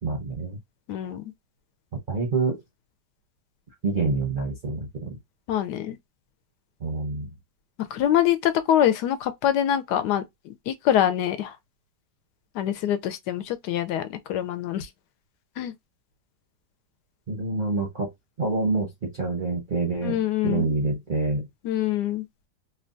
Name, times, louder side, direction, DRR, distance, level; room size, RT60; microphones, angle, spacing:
voice 1, 0.0-0.6 2.1-2.6 3.8-5.2 6.8-7.3 17.3-18.1 18.4-21.5, right 3 dB, 45° right, 0.6 m, -27 dB
voice 2, 0.9-1.2 5.5-6.0 7.9-11.6 12.5-14.9 15.6-15.7 20.0-20.6 21.6-22.2, left 11 dB, 75° left, 1.1 m, -25 dB
3.2 x 2.2 x 2.5 m
omnidirectional pair, 1.9 m